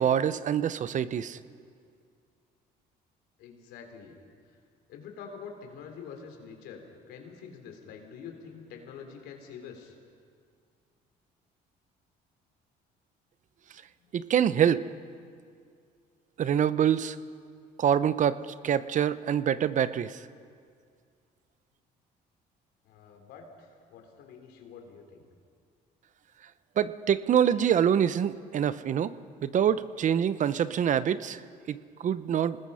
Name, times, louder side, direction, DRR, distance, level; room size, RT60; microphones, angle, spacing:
voice 1, 0.0-1.4 14.1-14.9 16.4-17.2 17.8-20.2 26.8-29.1 29.4-31.4 31.7-32.6, right 9 dB, 50° right, 15 dB, 0.7 m, -25 dB
voice 2, 3.4-4.2 4.5-4.6 4.9-6.8 7.1-9.9 14.0-14.2 22.8-25.2, left 6 dB, 85° left, 3 dB, 3.6 m, -46 dB
27.0 x 20.0 x 5.6 m, 2.2 s
cardioid pair, 110°, 17 cm